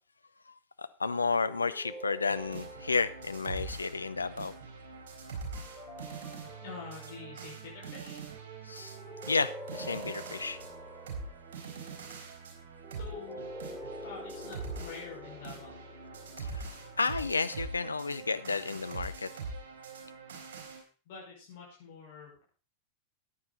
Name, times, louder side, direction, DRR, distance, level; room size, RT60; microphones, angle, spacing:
voice 1, 0.8-4.5 8.7-9.0 9.3-10.6 16.4-19.3, left 4 dB, 80° left, 12 dB, 0.7 m, -32 dB
sound 1, 1.4-3.9 5.5-7.4 8.8-11.5 12.8-17.4, equal, ahead, 3.4 m, -47 dB
sound 2, 2.3-20.8, right 4 dB, 55° right, 4.2 m, -43 dB
voice 2, 6.6-8.3 12.9-13.5 14.0-15.8 21.1-22.4, left 5 dB, 50° left, -4 dB, 5.4 m, -46 dB
14.5 x 9.6 x 4.1 m, 0.38 s
figure-of-eight pair, 90°, 0 cm